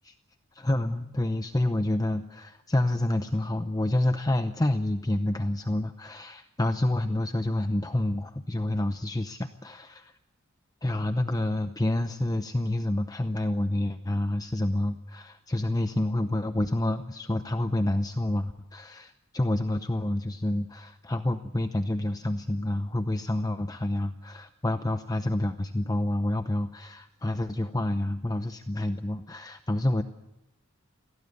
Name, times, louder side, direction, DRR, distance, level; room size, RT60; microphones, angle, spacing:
voice 1, 0.5-10.1 10.8-30.0, left 1 dB, 20° left, 8 dB, 0.7 m, -28 dB
23.0 x 17.5 x 8.4 m, 0.94 s
head